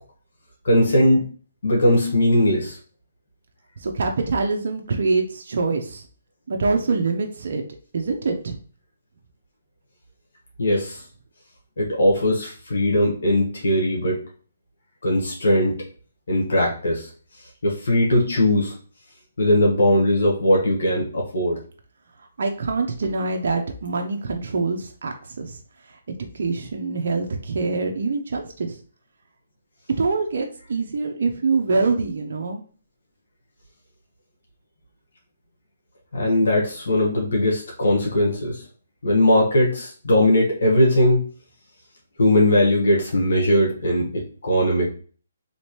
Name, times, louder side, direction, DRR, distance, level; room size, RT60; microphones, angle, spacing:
voice 1, 0.6-1.2 1.6-2.8 10.6-11.0 11.8-14.2 15.0-15.8 16.3-17.1 17.6-18.7 19.4-21.6 36.1-38.6 39.0-41.2 42.2-44.9, left 1 dB, 75° left, -2 dB, 1.4 m, -19 dB
voice 2, 3.8-6.0 6.5-7.6 7.9-8.6 22.4-25.6 25.9-26.0 26.3-28.8 30.0-32.6, right 4 dB, 65° right, 3 dB, 0.5 m, -25 dB
3.2 x 2.9 x 3.0 m, 0.42 s
hypercardioid pair, 150°, 0 cm